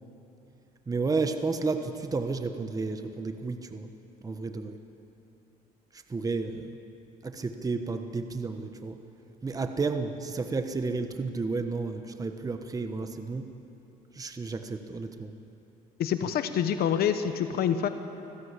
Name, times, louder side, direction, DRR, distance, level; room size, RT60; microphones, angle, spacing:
voice 1, 0.9-3.9 4.2-4.8 5.9-6.7 7.2-9.0 9.4-13.6 14.1-15.3, right 4 dB, 20° right, 7 dB, 1.2 m, -32 dB
voice 2, 16.0-17.9, left 8 dB, 65° left, 9 dB, 1.1 m, -26 dB
25.0 x 16.0 x 8.3 m, 2.9 s
cardioid pair, 110°, 17 cm